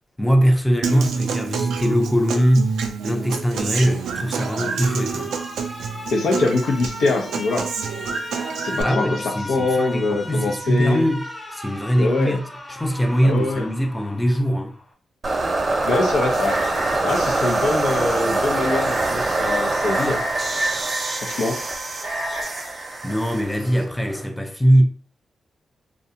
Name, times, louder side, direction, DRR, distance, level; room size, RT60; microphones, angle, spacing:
voice 1, 0.2-2.7 3.0-5.3 8.7-12.4 12.7-14.7 23.0-24.9, equal, 5° left, 0.5 m, -21 dB
Human voice / Acoustic guitar, 0.8-8.8, right 6 dB, 90° right, 0.3 m, -28 dB
Alarm, 3.9-14.9, left 1 dB, 25° left, 0.9 m, -36 dB
voice 2, 6.1-7.7 8.6-11.0 12.0-12.4 13.2-13.7 15.8-16.6 17.0-20.2 21.2-21.6, left 3 dB, 85° left, 0.6 m, -23 dB
sound 1, 15.2-24.3, right 2 dB, 45° right, 0.6 m, -24 dB
2.5 x 2.1 x 2.8 m
cardioid pair, 55°, 0 cm